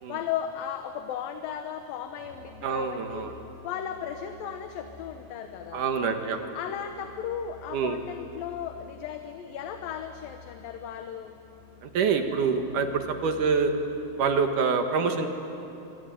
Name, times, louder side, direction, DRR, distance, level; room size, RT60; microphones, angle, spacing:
voice 1, 0.1-3.3 3.6-5.9 6.5-11.3 13.3-13.4, left 9 dB, 70° left, 6 dB, 2.6 m, -36 dB
Musical instrument, 2.2-14.0, left 4 dB, 45° left, 2.8 m, -51 dB
voice 2, 2.6-3.3 5.7-6.6 7.7-8.0 11.8-13.7 14.2-15.3, right 5 dB, 60° right, 6 dB, 2.7 m, -26 dB
25.0 x 24.0 x 9.3 m, 2.9 s
omnidirectional pair, 4.5 m